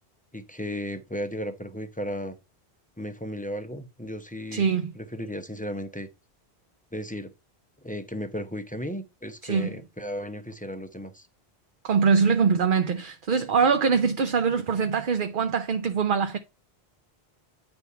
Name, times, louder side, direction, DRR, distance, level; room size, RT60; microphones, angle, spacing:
voice 1, 0.3-2.4 3.0-4.7 5.0-6.1 6.9-7.3 7.8-11.3, equal, 10° left, 0.6 m, -35 dB
voice 2, 4.5-4.9 9.4-9.7 11.8-16.4, right 5 dB, 55° right, 0.8 m, -23 dB
9.7 x 3.5 x 5.5 m
omnidirectional pair, 1.1 m